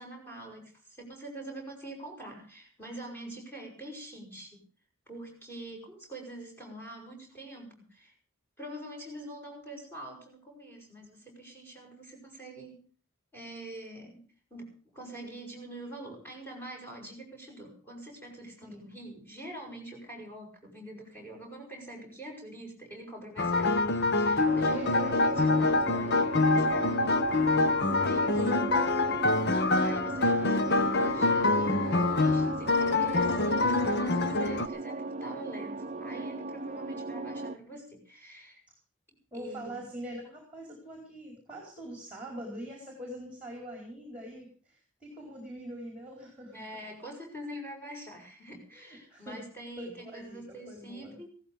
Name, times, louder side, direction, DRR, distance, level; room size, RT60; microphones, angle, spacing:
voice 1, 0.0-4.6 5.1-8.1 8.6-12.8 13.3-14.2 14.5-23.8 24.2-27.2 28.0-28.3 29.3-38.6 39.3-39.8 46.5-51.3, right 1 dB, 10° left, 0 dB, 6.8 m, -45 dB
Old Fasioned Auto Piano, 23.4-34.7, left 2 dB, 50° left, 0.9 m, -26 dB
sound 1, 24.5-37.6, right 3 dB, 30° right, 0.7 m, -37 dB
voice 2, 24.7-25.2 26.3-26.6 27.8-29.0 39.3-46.6 49.1-49.5 49.8-51.2, equal, 5° right, 0 dB, 4.5 m, -43 dB
16.5 x 14.5 x 5.2 m, 0.41 s
head